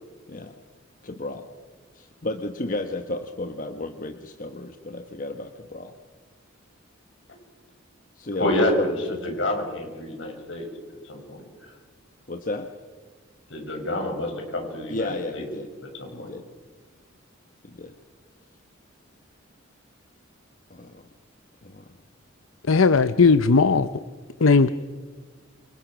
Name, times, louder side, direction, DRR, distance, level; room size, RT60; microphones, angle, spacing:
voice 1, 1.0-1.5 1.9-5.9 8.2-9.6 12.3-12.7 14.9-15.7 16.1-16.4 17.6-17.9 20.7-21.1 21.6-21.9, left 2 dB, 40° left, 7 dB, 1.2 m, -33 dB
voice 2, 8.4-8.9 9.2-10.7 11.0-11.4 13.5-15.5 16.0-16.3, left 1 dB, 60° left, 2 dB, 6.6 m, -28 dB
voice 3, 22.7-23.9 24.4-24.7, left 4 dB, 80° left, 13 dB, 0.7 m, -17 dB
28.5 x 26.5 x 6.2 m, 1.5 s
head